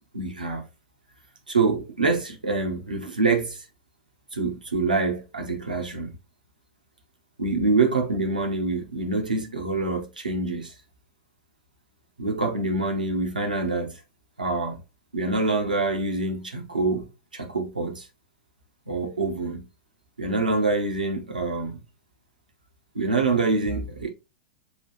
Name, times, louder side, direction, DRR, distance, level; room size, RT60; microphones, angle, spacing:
voice 1, 0.1-0.7 1.5-3.6 4.3-6.1 7.4-10.7 12.2-14.0 14.4-14.8 15.1-18.1 18.9-19.6 20.2-21.8 22.9-24.1, right 3 dB, 80° right, 1.0 m, -26 dB
6.1 x 2.4 x 3.0 m
figure-of-eight pair, 90°, 4 cm